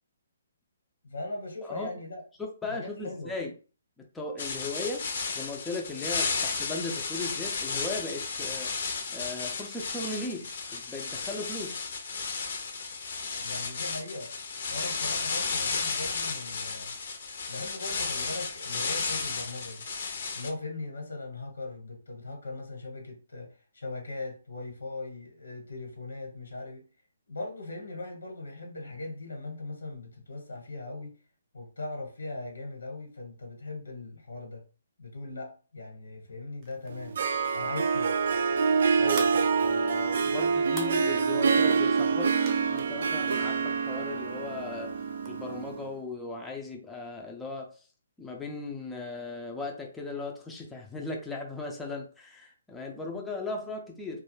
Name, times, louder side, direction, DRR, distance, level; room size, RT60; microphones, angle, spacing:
voice 1, 1.0-2.2 2.7-3.3 6.4-6.5 13.4-14.3 14.7-16.9 17.5-19.9 20.3-26.8 27.3-31.1 31.5-34.6 35.0-37.2 37.5-38.1, left 2 dB, 85° left, 1.1 m, -39 dB
voice 2, 2.6-3.5 4.1-5.1 5.3-8.7 9.1-11.9 39.0-42.4 42.7-45.0 45.3-47.8 48.2-54.2, left 3 dB, 5° left, 0.4 m, -37 dB
sound 1, 4.4-20.5, left 4 dB, 55° left, 0.5 m, -33 dB
sound 2, 36.6-45.7, right 3 dB, 30° right, 0.7 m, -49 dB
Harp, 36.9-45.9, right 5 dB, 65° right, 0.3 m, -26 dB
2.2 x 2.1 x 3.1 m
hypercardioid pair, 150°, 0 cm